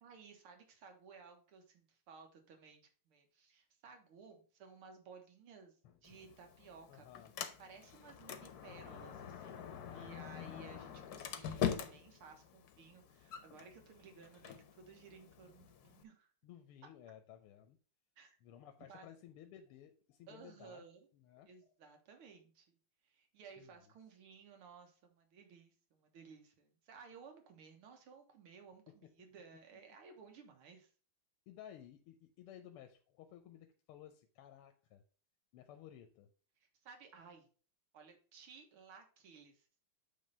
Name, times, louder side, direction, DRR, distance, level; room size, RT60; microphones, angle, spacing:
voice 1, 0.0-7.1 7.6-16.3 18.2-18.4 18.9-19.1 20.3-21.1 21.5-22.8 23.0-30.9 36.6-37.5 37.9-39.8, right 5 dB, 80° right, 4 dB, 2.1 m, -58 dB
voice 2, 5.8-6.2 6.9-7.3 9.7-10.1 16.4-17.8 18.4-20.8 21.1-21.5 23.6-23.7 28.9-29.1 31.5-35.0 35.5-36.3, left 10 dB, 90° left, 7 dB, 1.6 m, -56 dB
Sliding door, 6.0-16.0, left 9 dB, 60° left, 1.0 m, -44 dB
8.5 x 3.3 x 5.4 m, 0.39 s
omnidirectional pair, 2.4 m